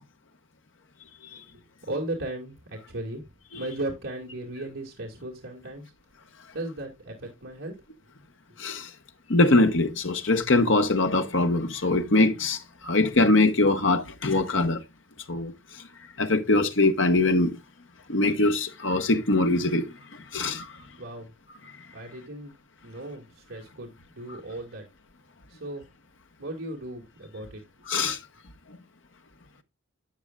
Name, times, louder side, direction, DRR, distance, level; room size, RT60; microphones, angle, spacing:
voice 1, 1.9-3.3 3.5-5.8 6.5-7.7 21.0-21.3 21.9-22.5 22.8-24.8 25.5-25.9 26.4-27.6, right 1 dB, 70° right, 2.2 m, -36 dB
voice 2, 9.3-12.6 12.8-14.8 15.3-15.5 16.2-17.6 18.1-19.8 20.3-20.7 27.9-28.2, left 2 dB, 65° left, 1.2 m, -22 dB
11.5 x 8.0 x 2.4 m
head